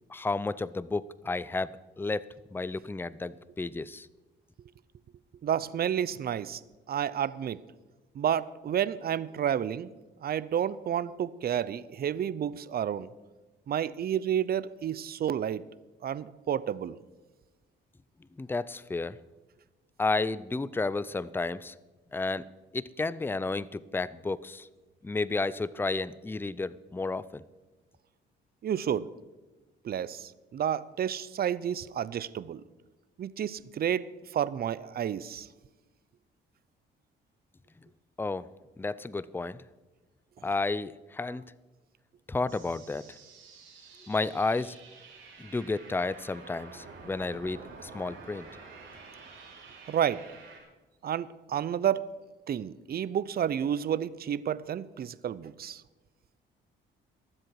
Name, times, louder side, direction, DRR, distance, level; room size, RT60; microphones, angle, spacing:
voice 1, 0.1-1.7 2.0-2.2 2.5-4.1 18.4-19.2 20.0-21.7 22.1-22.4 22.7-24.7 25.0-27.4 38.2-38.5 38.8-39.6 40.4-41.4 42.3-43.0 44.1-44.7 45.4-48.5, left 3 dB, 10° left, 17 dB, 0.5 m, -32 dB
voice 2, 5.4-6.6 6.9-7.6 8.1-9.9 10.2-13.1 13.7-15.6 16.0-17.0 28.6-29.1 29.8-32.6 33.2-35.5 49.9-50.2 51.0-52.0 52.5-55.8, right 9 dB, 50° right, 18 dB, 0.6 m, -30 dB
sound 1, 42.5-50.6, right 4 dB, 85° right, 4.6 m, -49 dB
23.0 x 7.7 x 4.7 m, 1.2 s
cardioid pair, 90°, 20 cm